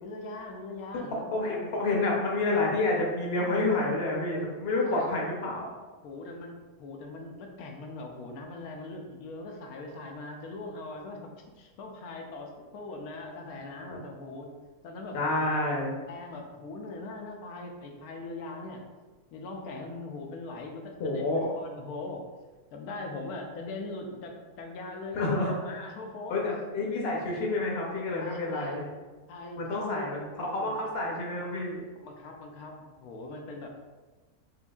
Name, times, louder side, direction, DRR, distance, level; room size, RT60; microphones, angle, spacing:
voice 1, 0.0-1.3 4.8-5.1 6.0-11.3 11.6-14.5 14.8-15.5 16.1-18.8 19.3-22.2 22.7-26.6 28.2-28.8 29.3-30.9 32.0-33.7, left 2 dB, 80° left, 2 dB, 1.1 m, -41 dB
voice 2, 1.3-5.6 15.1-15.9 21.0-21.5 25.1-25.5 26.3-28.9 29.6-31.8, left 2 dB, 50° left, -2 dB, 0.9 m, -29 dB
5.1 x 2.6 x 2.3 m, 1.3 s
omnidirectional pair, 1.5 m